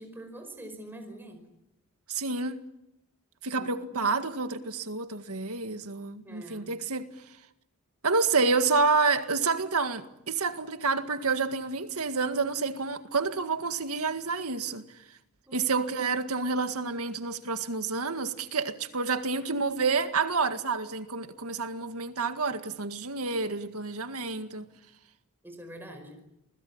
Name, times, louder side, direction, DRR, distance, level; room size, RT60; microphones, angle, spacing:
voice 1, 0.0-1.5 3.5-4.0 6.2-6.7 15.5-15.6 25.4-26.2, right 1 dB, 10° right, 4.9 m, -45 dB
voice 2, 2.1-2.6 3.4-7.1 8.0-14.8 15.5-24.7, right 4 dB, 85° right, 1.9 m, -29 dB
28.5 x 20.5 x 8.7 m
head